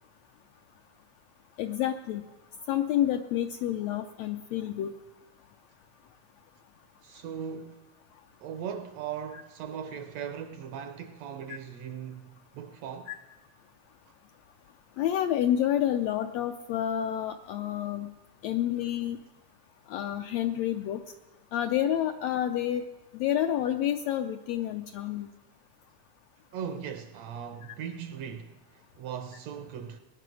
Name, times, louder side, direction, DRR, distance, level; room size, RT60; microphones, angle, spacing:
voice 1, 1.6-2.2 2.7-4.9 11.5-11.6 13.1-13.2 15.0-18.1 18.4-19.2 19.9-21.0 21.5-22.8 23.1-25.3, left 11 dB, 80° left, 1.5 m, -29 dB
voice 2, 7.0-7.9 8.4-13.1 26.5-30.0, right 8 dB, 75° right, 1.6 m, -39 dB
19.0 x 10.0 x 6.3 m
omnidirectional pair, 3.5 m